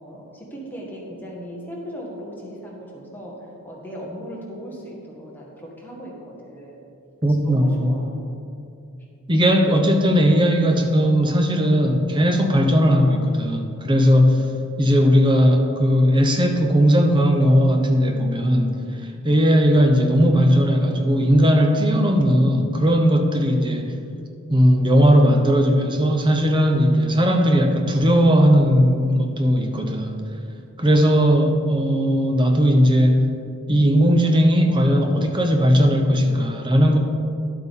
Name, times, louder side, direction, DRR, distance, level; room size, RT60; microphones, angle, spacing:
voice 1, 0.0-6.8 7.3-8.1, equal, 10° left, -4 dB, 1.5 m, -37 dB
voice 2, 7.2-7.9 9.3-14.5 14.8-18.8 19.2-24.0 24.5-30.2 30.8-33.3 33.7-37.0, equal, 20° right, 4 dB, 0.7 m, -17 dB
11.5 x 8.1 x 3.6 m, 2.6 s
head